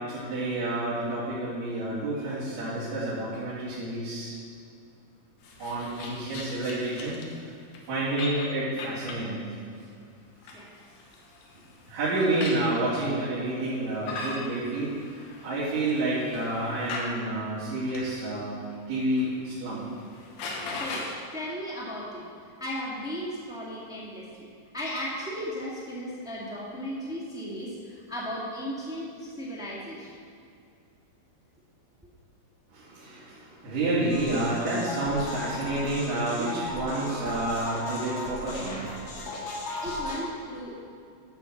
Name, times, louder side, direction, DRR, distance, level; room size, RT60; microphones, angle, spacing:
voice 1, 0.0-4.3 5.6-7.2 7.9-9.4 11.9-14.9 15.4-19.8 32.7-39.7, right 2 dB, 85° right, -13 dB, 4.5 m, -29 dB
sound 1, 5.4-7.4 7.7-7.8 8.2-9.3 10.2-12.7 13.7-17.2 17.9-18.2 18.7-19.3 19.6-19.7 20.0-21.1, left 3 dB, 80° left, 3.1 m, -39 dB
voice 2, 20.7-22.2 22.6-24.5 24.7-30.1 39.8-40.8, equal, ahead, -7 dB, 1.1 m, -36 dB
sound 2, 34.1-40.2, left 2 dB, 65° left, 3.1 m, -36 dB
12.5 x 4.7 x 7.2 m, 2.4 s
omnidirectional pair, 4.4 m